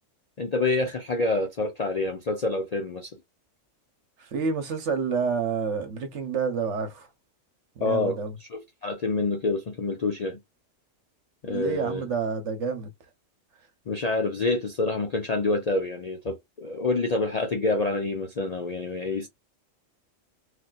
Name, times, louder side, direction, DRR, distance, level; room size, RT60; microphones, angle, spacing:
voice 1, 0.4-3.1 7.8-8.2 8.5-10.4 11.4-12.0 13.9-19.3, left 3 dB, 50° left, 0.5 m, -27 dB
voice 2, 4.2-7.1 7.8-8.4 11.4-12.9, right 5 dB, 65° right, 1.2 m, -29 dB
3.2 x 2.7 x 2.3 m
omnidirectional pair, 1.3 m